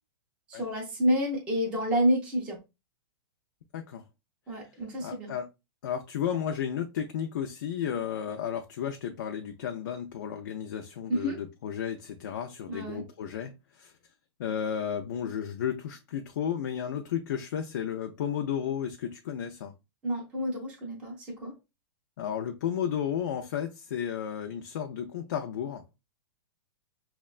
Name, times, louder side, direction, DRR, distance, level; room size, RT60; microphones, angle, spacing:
voice 1, 0.5-2.6 4.5-5.4 11.1-11.4 12.7-13.0 20.0-21.5, equal, 10° right, 0.5 m, -29 dB
voice 2, 3.7-4.0 5.0-5.5 5.8-13.9 14.4-19.7 22.2-25.8, left 8 dB, 45° left, 0.4 m, -33 dB
5.8 x 2.1 x 2.3 m
supercardioid pair, 180°, 15 cm